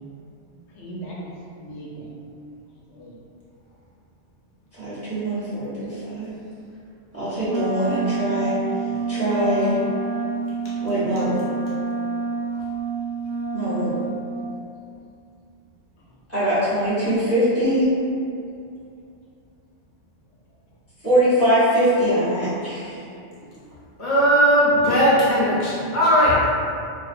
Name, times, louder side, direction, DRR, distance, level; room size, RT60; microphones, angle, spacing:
voice 1, 0.5-2.1 2.7-3.1 8.7-9.0 23.0-23.5 23.9-24.1 25.5-25.6 25.9-26.0, right 1 dB, 85° left, -5 dB, 0.9 m, -40 dB
voice 2, 4.8-6.3 7.1-8.5 9.1-9.8 10.8-11.4 13.5-13.9 16.3-17.9 21.0-23.0, equal, 15° right, -13 dB, 0.8 m, -22 dB
Wind instrument woodwind instrument, 7.4-14.3, right 3 dB, 90° right, 0.9 m, -28 dB
voice 3, 24.0-26.5, equal, 45° left, -10 dB, 0.8 m, -18 dB
2.5 x 2.1 x 2.4 m, 2.5 s
omnidirectional pair, 1.2 m